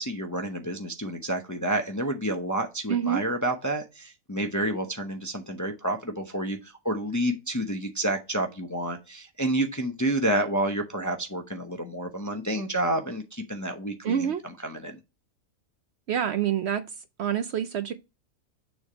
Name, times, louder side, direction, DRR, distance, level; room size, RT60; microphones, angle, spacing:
voice 1, 0.0-15.0, right 1 dB, 20° left, 0.5 m, -29 dB
voice 2, 2.9-3.2 14.0-14.4 16.1-16.8 17.2-17.9, right 9 dB, 65° right, 0.7 m, -26 dB
7.0 x 3.4 x 5.0 m
omnidirectional pair, 1.4 m